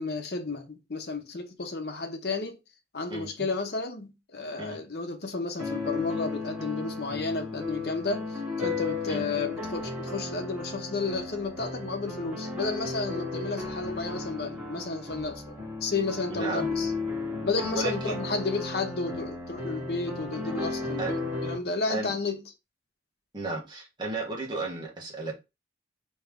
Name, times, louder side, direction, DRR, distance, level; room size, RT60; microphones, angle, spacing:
voice 1, 0.0-2.6 2.9-16.9 17.4-22.4, left 3 dB, 65° left, 1.0 m, -32 dB
voice 2, 3.1-3.5 4.6-4.8 9.0-9.2 16.3-16.7 17.7-18.2 21.0-21.1 21.9-22.1 23.3-25.3, right 2 dB, 25° right, 1.5 m, -34 dB
sound 1, 5.6-21.6, left 3 dB, 5° right, 2.4 m, -34 dB
4.5 x 3.1 x 3.7 m
head